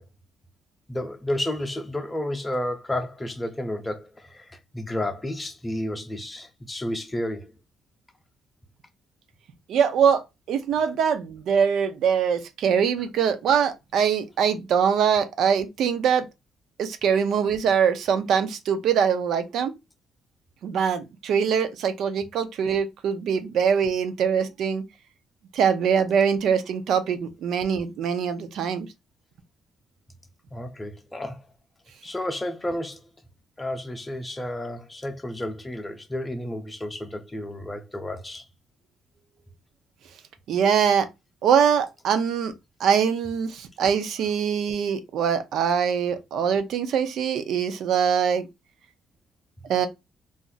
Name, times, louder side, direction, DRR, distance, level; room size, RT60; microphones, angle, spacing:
voice 1, 0.9-7.5 30.5-31.4 32.0-33.0 33.6-38.4, left 1 dB, 15° left, 0.6 m, -31 dB
voice 2, 9.7-16.3 16.8-19.7 20.6-24.8 25.5-28.9 40.5-41.1 41.4-42.5 42.8-48.5 49.7-49.9, right 7 dB, 75° right, 0.5 m, -23 dB
2.5 x 2.0 x 3.9 m
cardioid pair, 90°, 0 cm